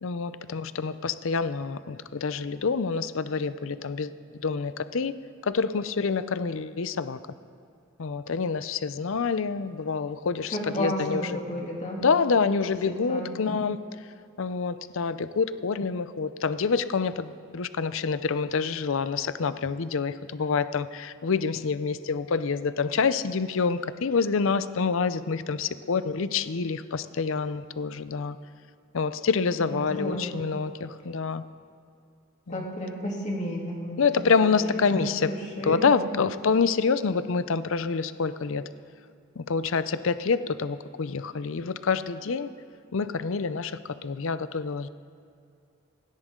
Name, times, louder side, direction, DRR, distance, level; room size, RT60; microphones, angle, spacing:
voice 1, 0.0-4.1 4.4-5.1 5.4-7.2 8.0-11.4 12.0-13.8 14.4-28.4 28.9-31.4 32.5-32.7 34.0-35.3 35.6-38.6 39.4-42.5 42.9-44.9, left 5 dB, 65° left, 13 dB, 0.5 m, -27 dB
voice 2, 10.5-12.0 13.1-13.3 29.6-30.3 32.5-36.1, left 1 dB, 35° left, -2 dB, 3.0 m, -32 dB
19.5 x 17.0 x 3.8 m, 2.5 s
head